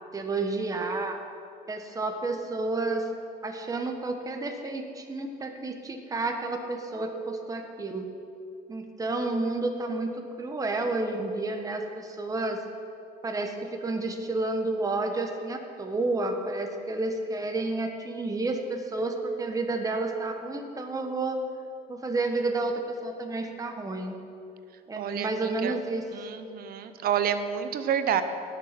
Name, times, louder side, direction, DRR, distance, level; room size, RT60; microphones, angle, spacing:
voice 1, 0.1-1.2 1.7-3.1 3.4-8.1 8.7-12.6 13.2-21.4 21.9-24.2 24.9-26.1, right 2 dB, 20° right, 4 dB, 1.2 m, -30 dB
voice 2, 25.0-25.7 26.1-28.2, right 8 dB, 60° right, 10 dB, 0.9 m, -29 dB
18.0 x 6.9 x 5.9 m, 2.5 s
cardioid pair, 110°, 17 cm